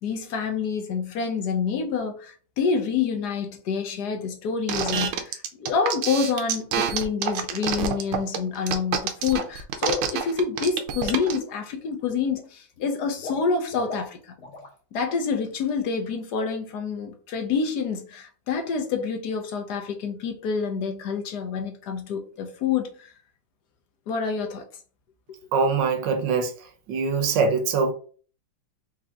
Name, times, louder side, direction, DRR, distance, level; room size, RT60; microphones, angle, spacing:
voice 1, 0.0-14.3 14.9-23.1 24.1-24.6, left 5 dB, 60° left, 1.3 m, -27 dB
sound 1, 4.7-11.4, right 8 dB, 90° right, 1.6 m, -27 dB
Water / Liquid, 10.9-11.0 11.3-11.9 12.2-14.8 15.0-15.3 15.6-15.7, left 3 dB, 85° left, 2.2 m, -41 dB
voice 2, 25.5-26.5 26.9-27.9, right 5 dB, 65° right, 1.3 m, -23 dB
5.1 x 2.9 x 3.6 m
omnidirectional pair, 2.2 m